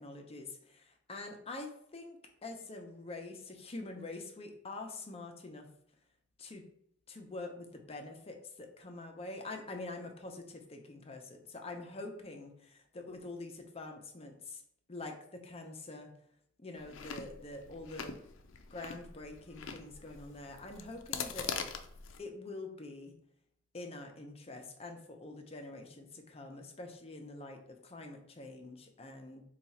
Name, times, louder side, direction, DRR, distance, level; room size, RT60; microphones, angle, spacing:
voice 1, 0.0-5.7 6.4-6.6 7.1-14.6 14.9-16.1 16.6-18.2 18.7-21.5 22.2-23.1 23.7-29.4, left 2 dB, 35° left, 4 dB, 0.6 m, -45 dB
Chewing mastication, 16.8-22.2, left 6 dB, 85° left, 0.4 m, -43 dB
4.2 x 2.4 x 4.1 m, 0.70 s
head